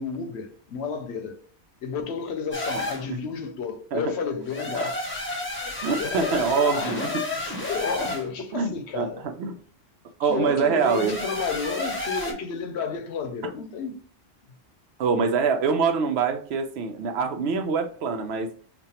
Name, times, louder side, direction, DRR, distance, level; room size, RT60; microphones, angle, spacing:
voice 1, 0.0-1.4 1.8-5.0 5.6-9.3 10.2-14.0, left 5 dB, 75° left, 0.8 m, -32 dB
sound 1, 2.5-3.1 4.4-8.3 10.8-12.3, left 2 dB, 10° left, 0.8 m, -31 dB
voice 2, 2.8-3.2 3.9-4.1 4.7-4.8 5.8-7.2 8.5-9.5 10.2-11.2 15.0-18.5, right 5 dB, 70° right, 0.8 m, -25 dB
5.2 x 2.2 x 2.8 m
omnidirectional pair, 1.2 m